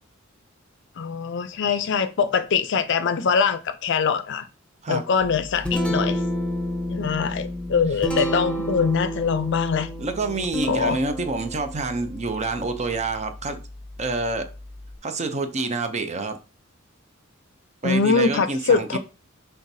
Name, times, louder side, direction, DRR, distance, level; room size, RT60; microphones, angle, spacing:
voice 1, 1.0-4.4 4.9-6.2 6.9-9.9 10.7-11.0 17.8-19.0, left 5 dB, 60° left, 0.5 m, -23 dB
Guitar, 5.2-15.0, equal, 5° left, 0.9 m, -31 dB
voice 2, 10.0-13.6 14.0-14.5 15.0-16.4 17.8-19.0, right 3 dB, 35° right, 0.6 m, -27 dB
5.7 x 3.4 x 2.7 m
head